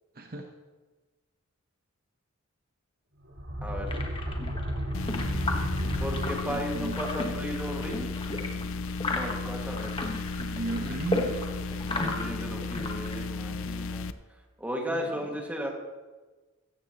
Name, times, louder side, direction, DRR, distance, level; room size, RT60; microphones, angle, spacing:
voice 1, 0.1-0.5 6.5-7.0 10.4-11.3 14.9-15.4, right 2 dB, 45° right, 3 dB, 1.0 m, -35 dB
sound 1, 3.2-7.0, equal, 80° right, 5.1 m, -33 dB
sound 2, 3.9-13.2, left 2 dB, 25° left, 1.3 m, -35 dB
sound 3, 4.9-14.1, left 4 dB, 65° left, 0.5 m, -35 dB
voice 2, 6.0-8.1 9.1-9.9 11.8-14.1 14.6-15.7, equal, 5° right, 0 dB, 2.0 m, -35 dB
16.5 x 14.0 x 3.0 m, 1.2 s
head